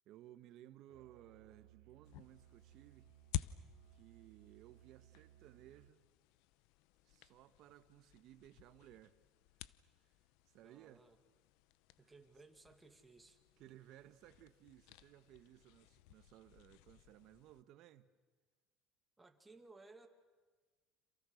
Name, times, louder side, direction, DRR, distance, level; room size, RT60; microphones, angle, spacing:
voice 1, 0.0-3.1 3.9-6.0 7.0-9.2 10.0-10.2 10.5-11.0 12.0-12.1 13.6-18.1, right 13 dB, 55° right, 1.4 m, -60 dB
Musical instrument, 0.9-6.0, right 14 dB, 75° right, 1.5 m, -64 dB
sound 1, 2.0-17.6, left 14 dB, 70° left, 0.8 m, -52 dB
voice 2, 10.6-11.2 12.0-13.4 19.2-20.1, right 3 dB, 10° right, 2.3 m, -60 dB
30.0 x 27.5 x 6.5 m
cardioid pair, 145°, 0 cm